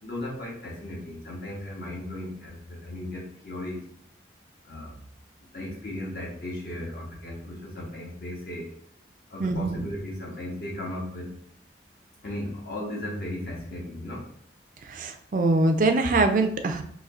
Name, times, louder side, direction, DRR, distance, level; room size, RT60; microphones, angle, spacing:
voice 1, 0.0-3.9 4.6-5.0 5.4-8.7 9.3-11.4 12.2-14.3, left 1 dB, 55° left, -3 dB, 0.9 m, -36 dB
voice 2, 9.4-9.8 14.8-16.8, right 2 dB, 45° right, 6 dB, 0.4 m, -23 dB
4.2 x 2.8 x 2.4 m, 0.66 s
head